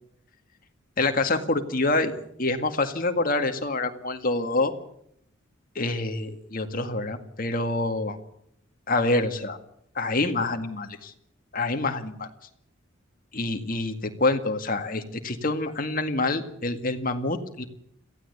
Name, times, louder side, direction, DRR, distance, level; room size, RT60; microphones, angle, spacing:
voice 1, 1.0-2.1 2.4-4.7 5.8-8.2 8.9-9.6 10.0-11.1 11.5-12.3 13.3-17.6, left 2 dB, 40° left, 6 dB, 2.0 m, -26 dB
22.0 x 15.5 x 8.2 m, 0.72 s
head